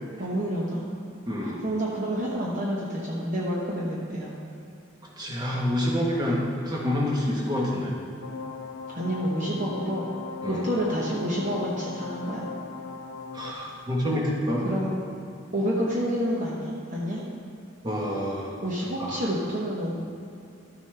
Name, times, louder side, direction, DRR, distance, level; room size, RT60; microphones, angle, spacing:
voice 1, 0.2-0.8 1.5-4.3 5.8-6.1 8.9-10.1 10.5-12.4 14.1-14.2 14.6-14.9 15.5-17.3 18.6-20.0, equal, 35° right, -5 dB, 1.0 m, -29 dB
voice 2, 1.3-1.6 5.2-7.9 10.4-10.6 13.3-14.7 17.8-18.6 19.0-19.2, left 1 dB, 20° right, -3 dB, 1.3 m, -27 dB
sound 1, 8.2-13.5, left 4 dB, 90° left, 0.7 m, -38 dB
12.5 x 6.9 x 3.4 m, 2.6 s
head